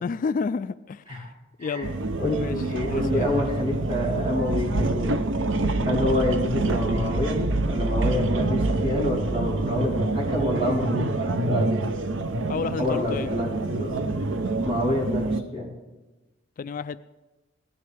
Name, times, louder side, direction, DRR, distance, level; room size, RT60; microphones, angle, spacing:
voice 1, 0.0-1.3 1.6-2.0 2.4-3.3 12.5-13.3 16.6-17.0, left 5 dB, 45° left, 13 dB, 0.3 m, -31 dB
sound 1, 1.8-15.4, right 2 dB, 80° right, 0.7 m, -26 dB
voice 2, 2.2-5.2 5.8-11.8 12.8-13.9 14.6-15.7, left 1 dB, 35° right, -5 dB, 3.8 m, -28 dB
17.5 x 13.0 x 3.4 m, 1.1 s
head